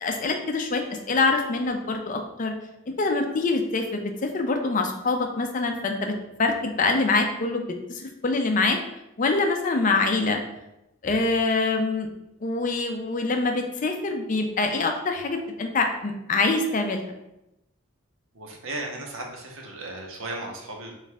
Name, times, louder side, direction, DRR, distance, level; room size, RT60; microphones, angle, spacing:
voice 1, 0.0-2.5 3.0-6.1 6.4-7.6 7.9-8.8 9.2-10.4 11.0-12.1 12.4-17.2, left 3 dB, 40° left, 4 dB, 0.4 m, -25 dB
voice 2, 18.3-20.9, right 2 dB, 70° right, 1 dB, 0.8 m, -35 dB
3.7 x 3.1 x 3.4 m, 0.89 s
head